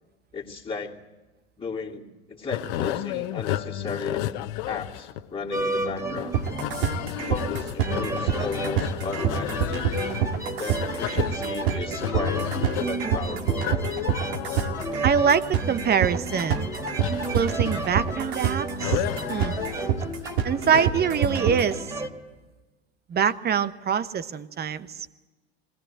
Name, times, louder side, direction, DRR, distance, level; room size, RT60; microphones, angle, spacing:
voice 1, 0.3-1.0 1.6-4.3 4.7-6.5 6.8-6.9 7.2-9.9 10.6-12.4 12.8-13.7 17.5-17.6 20.7-20.8, left 4 dB, 15° left, -3 dB, 2.8 m, -35 dB
sound 1, 2.5-21.2, left 13 dB, 60° left, 1.1 m, -33 dB
sound 2, 5.5-22.1, right 2 dB, 10° right, 2.7 m, -33 dB
sound 3, 6.3-21.8, right 8 dB, 70° right, 2.2 m, -26 dB
voice 2, 15.0-16.7 17.3-19.0 19.3-19.5 20.4-21.9 23.1-25.1, right 7 dB, 30° right, 14 dB, 1.1 m, -24 dB
21.5 x 17.5 x 8.0 m, 1.2 s
hypercardioid pair, 85°, 33 cm